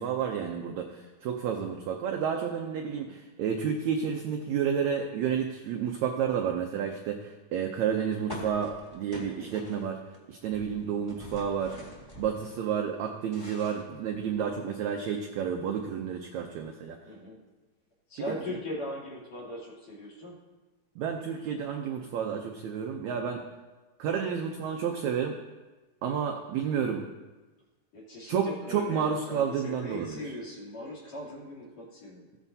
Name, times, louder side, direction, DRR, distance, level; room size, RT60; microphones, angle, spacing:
voice 1, 0.0-10.0 10.3-11.8 12.2-17.0 21.0-23.4 24.0-25.4 26.0-27.0 28.3-30.2, right 7 dB, 80° right, 3 dB, 1.6 m, -30 dB
sound 1, 8.3-10.2 10.4-12.6 13.0-14.5, equal, 10° left, 1.9 m, -45 dB
voice 2, 9.3-9.7 17.1-17.4 18.1-20.4 27.9-32.2, left 1 dB, 50° left, -5 dB, 3.9 m, -40 dB
16.0 x 9.3 x 2.8 m, 1.2 s
omnidirectional pair, 4.0 m